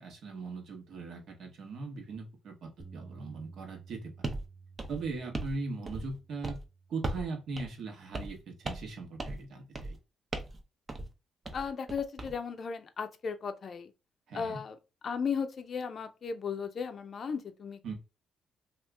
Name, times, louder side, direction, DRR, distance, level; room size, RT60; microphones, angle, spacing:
voice 1, 0.0-4.1 4.9-6.6 6.9-10.0 14.3-14.6 17.8-17.9, right 3 dB, 70° right, 1.1 m, -39 dB
Bass guitar, 2.8-9.0, right 4 dB, 5° left, 0.7 m, -54 dB
sound 1, 4.2-4.4 4.8-5.6 5.9-6.2 6.4-6.6 7.0-7.3 7.6-7.7 8.1-8.4 8.6-8.9 9.2-9.4 9.7-10.0 10.3-10.6 10.9-11.1 11.4-12.3, right 2 dB, 30° right, 0.6 m, -37 dB
voice 2, 11.5-13.9 14.3-14.8 15.0-17.9, left 6 dB, 50° left, 0.4 m, -36 dB
2.8 x 2.4 x 3.3 m
cardioid pair, 90°, 0 cm